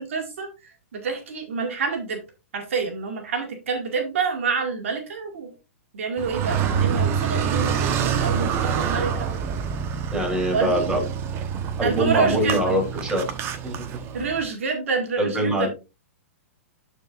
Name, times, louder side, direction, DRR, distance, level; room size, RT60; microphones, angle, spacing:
voice 1, 0.0-2.2 2.5-5.5 5.9-9.4 10.5-10.8 11.8-12.7 14.1-15.7, right 5 dB, 70° right, 4 dB, 1.9 m, -27 dB
Car, 6.2-14.4, right 7 dB, 35° right, 1.0 m, -26 dB
voice 2, 10.1-11.0 11.8-13.3 13.6-13.8 15.2-15.7, right 1 dB, 10° right, 1 dB, 3.2 m, -23 dB
13.0 x 4.6 x 2.5 m, 0.27 s
hypercardioid pair, 115°, 7 cm